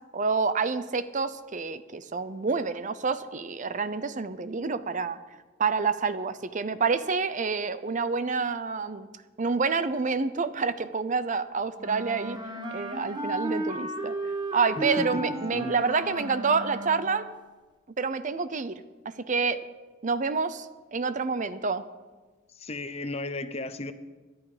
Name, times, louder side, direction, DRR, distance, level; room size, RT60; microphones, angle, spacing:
voice 1, 0.1-5.2 5.6-9.1 9.4-14.1 14.5-17.3 18.0-19.6 20.0-21.8, right 4 dB, 40° right, 13 dB, 0.6 m, -28 dB
Wind instrument woodwind instrument, 11.8-17.3, right 1 dB, 25° right, 1.2 m, -34 dB
voice 2, 14.7-15.8 22.6-23.9, left 2 dB, 35° left, 11 dB, 0.8 m, -35 dB
18.5 x 12.0 x 5.0 m, 1.3 s
head